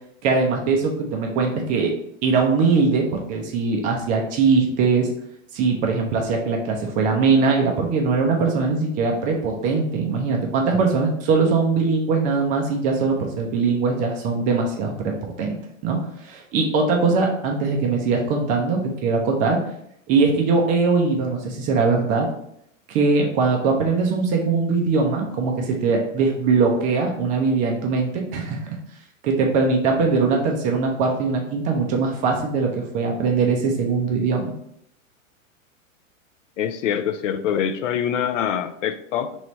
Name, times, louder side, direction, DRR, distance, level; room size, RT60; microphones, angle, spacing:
voice 1, 0.2-1.9 2.2-5.1 5.5-19.6 20.1-22.3 22.9-28.6 29.2-34.5, right 4 dB, 20° right, 1 dB, 0.3 m, -21 dB
voice 2, 36.6-39.4, left 9 dB, 65° left, 11 dB, 0.5 m, -24 dB
3.2 x 3.1 x 4.0 m, 0.73 s
hypercardioid pair, 115°, 41 cm